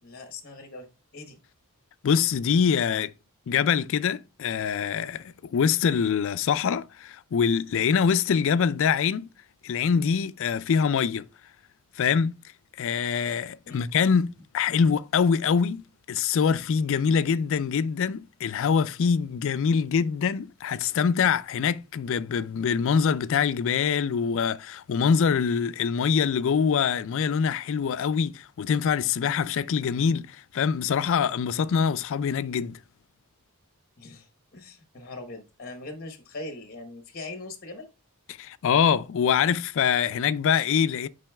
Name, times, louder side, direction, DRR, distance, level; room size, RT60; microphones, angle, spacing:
voice 1, 0.0-0.9 1.1-1.4 13.6-13.8 34.0-37.9, left 2 dB, 40° left, 0.9 m, -41 dB
voice 2, 2.0-3.1 3.5-9.3 9.6-11.3 12.0-12.3 12.8-32.8 38.4-41.1, left 6 dB, 60° left, 0.3 m, -24 dB
8.9 x 5.4 x 2.2 m
head